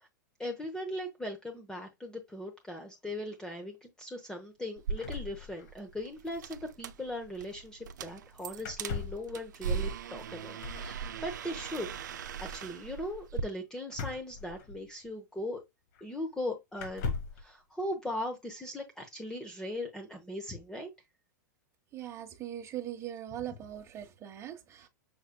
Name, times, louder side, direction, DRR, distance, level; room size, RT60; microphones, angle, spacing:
voice 1, 0.4-11.9 12.2-15.6 16.0-17.1 17.4-20.9, left 1 dB, 5° left, 1.0 m, -39 dB
sound 1, 4.8-13.4, right 6 dB, 85° right, 0.5 m, -39 dB
sound 2, 5.0-6.0 6.3-6.4 6.5-6.8 8.6-9.3 10.6-10.9 13.9-15.1 15.9-16.0 16.7-17.4, left 5 dB, 65° left, 1.5 m, -39 dB
voice 2, 21.9-24.9, right 11 dB, 30° right, 1.2 m, -41 dB
6.4 x 3.4 x 2.2 m
hypercardioid pair, 115°, 10 cm